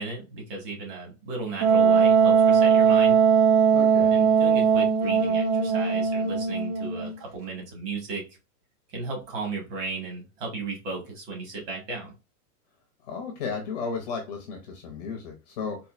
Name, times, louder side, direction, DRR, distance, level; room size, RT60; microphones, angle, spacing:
voice 1, 0.0-3.2 4.1-8.2 8.9-12.1, right 3 dB, 35° right, 0 dB, 1.8 m, -35 dB
Wind instrument woodwind instrument, 1.6-7.1, right 6 dB, 65° right, 0.9 m, -20 dB
voice 2, 3.7-4.2 13.0-15.8, left 5 dB, 30° left, 3 dB, 0.5 m, -34 dB
4.2 x 2.6 x 2.4 m, 0.29 s
supercardioid pair, 160°, 47 cm